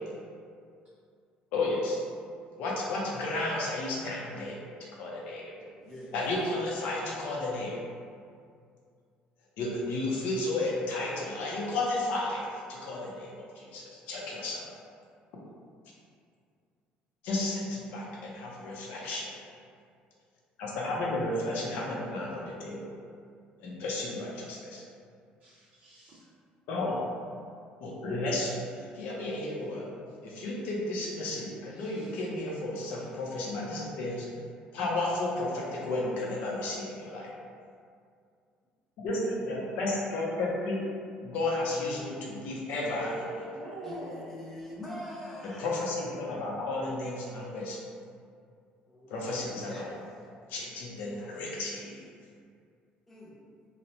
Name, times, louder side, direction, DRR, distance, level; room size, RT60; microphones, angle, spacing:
voice 1, 1.5-2.0 2.6-4.6 5.0-5.5 6.1-7.8 9.6-14.7 17.2-19.3 20.6-23.0 23.6-24.8 26.7-27.0 27.8-29.9 30.2-34.3 34.7-37.3 39.0-40.8 41.2-43.4 45.4-47.8 49.1-49.9 50.5-52.0, left 2 dB, 70° left, -3 dB, 0.6 m, -33 dB
voice 2, 5.6-6.1 43.8-45.7 48.9-50.0 53.1-53.4, left 1 dB, 10° left, -5 dB, 0.5 m, -43 dB
voice 3, 25.4-26.2 31.3-32.2 32.9-33.1 42.8-44.5, right 2 dB, 45° right, -8 dB, 0.5 m, -43 dB
2.9 x 2.0 x 2.6 m, 2.3 s
cardioid pair, 160°, 3 cm